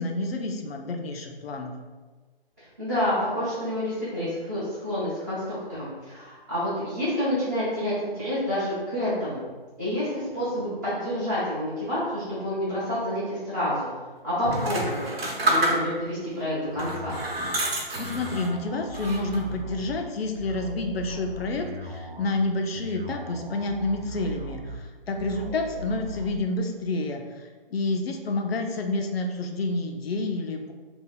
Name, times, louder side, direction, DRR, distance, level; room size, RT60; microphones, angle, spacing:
voice 1, 0.0-1.7 17.6-30.7, left 2 dB, 90° left, 3 dB, 0.6 m, -29 dB
voice 2, 2.8-9.5 9.8-13.9 14.2-15.1 15.4-17.1, equal, 20° right, -13 dB, 0.6 m, -28 dB
sound 1, 14.4-16.2 16.7-18.5 18.9-19.6, right 1 dB, 90° right, 1.1 m, -28 dB
sound 2, 16.8-26.4, equal, 65° right, 0.7 m, -39 dB
2.8 x 2.3 x 3.9 m, 1.3 s
hypercardioid pair, 165°, 29 cm